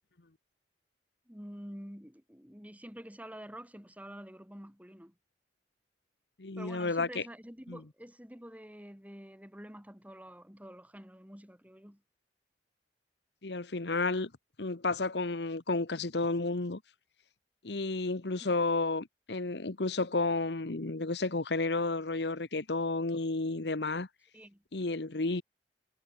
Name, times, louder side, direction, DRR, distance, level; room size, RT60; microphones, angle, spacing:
voice 1, 1.3-5.1 6.6-12.0 18.4-18.5 24.3-24.6, equal, 10° right, 5.0 m, -48 dB
voice 2, 6.4-7.2 7.7-7.8 13.4-14.3 14.6-16.8 17.6-24.1 24.7-25.4, left 3 dB, 70° left, 1.2 m, -31 dB
head